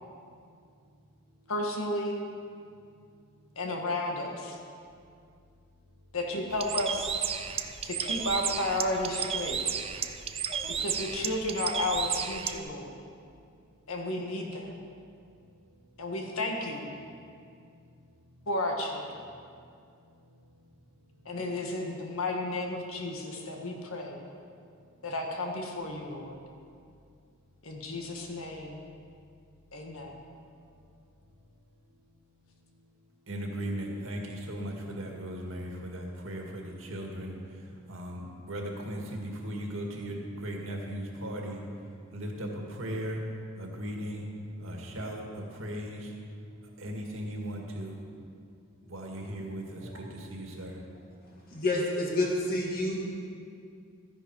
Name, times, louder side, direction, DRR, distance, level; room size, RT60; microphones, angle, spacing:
voice 1, 1.5-2.2 3.5-4.6 6.1-7.1 7.8-9.6 10.8-13.0 13.9-14.7 16.0-16.8 18.5-19.2 21.2-24.2 25.0-26.4 27.6-28.8 29.7-30.2, left 1 dB, 80° left, 1 dB, 1.6 m, -33 dB
Bird, 6.5-12.6, right 7 dB, 30° right, 0.5 m, -33 dB
voice 2, 33.3-41.6 42.1-43.2 43.6-44.3 44.6-46.1 46.6-48.0 48.9-50.8, equal, 70° right, 0 dB, 2.0 m, -37 dB
voice 3, 51.2-53.1, left 1 dB, 45° left, -2 dB, 2.2 m, -29 dB
14.0 x 10.0 x 4.7 m, 2.3 s
head